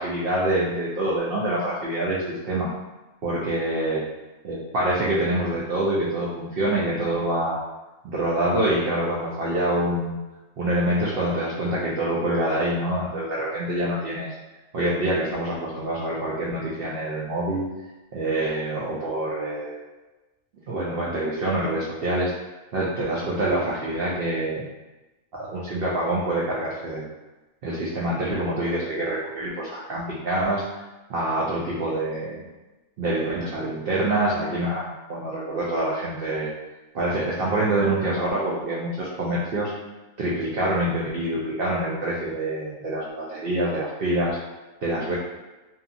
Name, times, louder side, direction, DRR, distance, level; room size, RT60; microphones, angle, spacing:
voice 1, 0.0-2.7 3.2-4.0 4.4-7.6 8.0-10.2 10.6-14.3 14.7-17.7 18.1-19.8 20.7-22.3 22.7-24.7 25.3-27.1 27.6-30.6 31.1-32.4 33.0-36.5 36.9-39.7 40.2-44.4 44.8-45.2, right 1 dB, 85° right, -5 dB, 0.5 m, -26 dB
2.7 x 2.4 x 2.5 m, 1.1 s
omnidirectional pair, 1.5 m